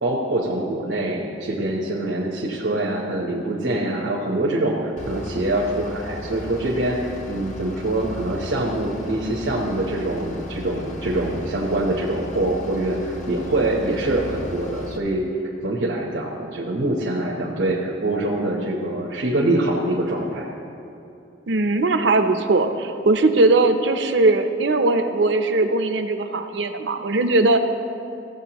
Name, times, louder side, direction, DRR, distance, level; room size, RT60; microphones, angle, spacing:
voice 1, 0.0-7.0 7.3-15.3 15.6-20.5, right 1 dB, 85° right, -4 dB, 1.0 m, -24 dB
Bus / Idling, 5.0-15.0, left 2 dB, 40° left, 0.7 m, -36 dB
voice 2, 21.5-27.6, right 2 dB, 70° right, 7 dB, 0.6 m, -19 dB
14.5 x 7.7 x 3.0 m, 2.8 s
head